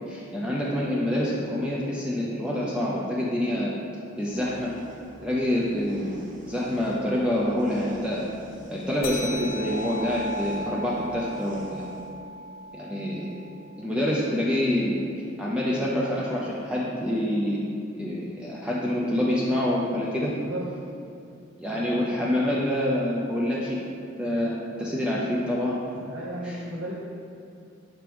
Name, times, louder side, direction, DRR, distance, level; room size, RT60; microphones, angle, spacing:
voice 1, 0.1-3.7 4.2-4.7 5.2-6.1 6.5-8.3 8.7-11.9 12.7-13.4 13.8-15.0 15.4-17.6 18.0-20.3 21.6-23.8 24.2-26.0 26.4-26.6, left 1 dB, 5° right, -6 dB, 0.5 m, -26 dB
sound 1, 4.2-12.1, right 1 dB, 40° right, 0.7 m, -47 dB
sound 2, 9.0-13.9, left 1 dB, 75° left, 0.7 m, -37 dB
voice 2, 20.2-20.6 26.0-27.0, right 1 dB, 70° right, -7 dB, 0.9 m, -35 dB
6.1 x 3.3 x 4.6 m, 2.5 s
head